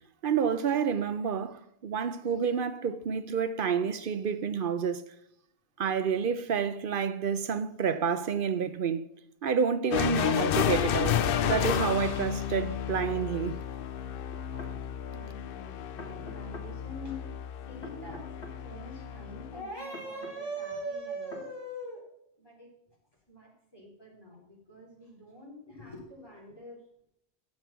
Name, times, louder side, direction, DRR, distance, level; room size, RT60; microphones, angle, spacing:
voice 1, 0.2-5.0 5.8-9.0 9.4-13.6, right 7 dB, 60° right, 0.7 m, -29 dB
sound 1, 9.9-19.6, left 9 dB, 65° left, 0.7 m, -31 dB
sound 2, 13.0-13.2 14.3-14.8 16.0-16.7 17.8-18.6 19.9-20.4 21.3-21.5, left 2 dB, 80° left, 2.4 m, -45 dB
voice 2, 15.0-17.2 17.7-22.1 22.4-22.7 23.3-26.8, right 1 dB, 20° left, 3.8 m, -43 dB
9.6 x 7.7 x 5.7 m
omnidirectional pair, 1.1 m